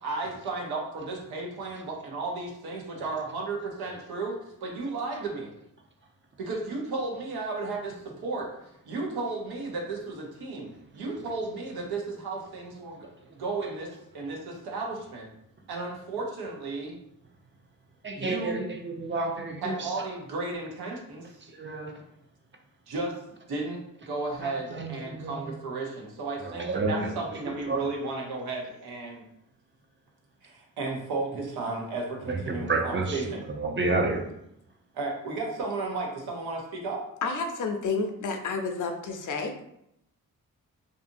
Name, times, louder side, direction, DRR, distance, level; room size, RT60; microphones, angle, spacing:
voice 1, 0.0-5.5 6.4-8.5 8.8-15.3 15.7-17.0 18.1-18.6 19.6-21.4 22.9-23.2 23.5-29.3 30.4-33.4 34.9-37.0, right 3 dB, 85° right, 0 dB, 0.8 m, -34 dB
voice 2, 18.0-19.9 21.4-22.0 24.4-25.4 26.4-27.2 27.7-27.8 32.3-34.2, right 3 dB, 30° right, 2 dB, 0.6 m, -30 dB
voice 3, 37.2-39.6, left 4 dB, 55° left, 5 dB, 0.5 m, -30 dB
2.6 x 2.5 x 2.6 m, 0.77 s
supercardioid pair, 45°, 37 cm